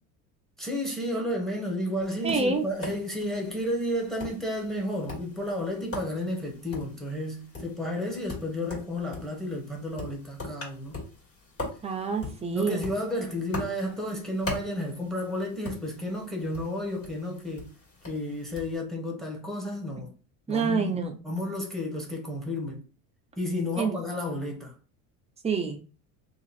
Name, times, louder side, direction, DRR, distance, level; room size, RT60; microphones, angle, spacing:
voice 1, 0.6-11.0 12.5-17.7 18.0-20.1 20.5-21.0 21.2-22.8 23.4-24.7, left 1 dB, ahead, 1.0 m, -32 dB
Tap, 2.0-18.8, left 2 dB, 30° left, 1.7 m, -42 dB
voice 2, 2.2-2.7 11.8-12.9 20.5-21.2 23.8-23.9 25.4-25.8, right 4 dB, 15° right, 0.6 m, -27 dB
2.9 x 2.5 x 4.0 m
cardioid pair, 125°, 41 cm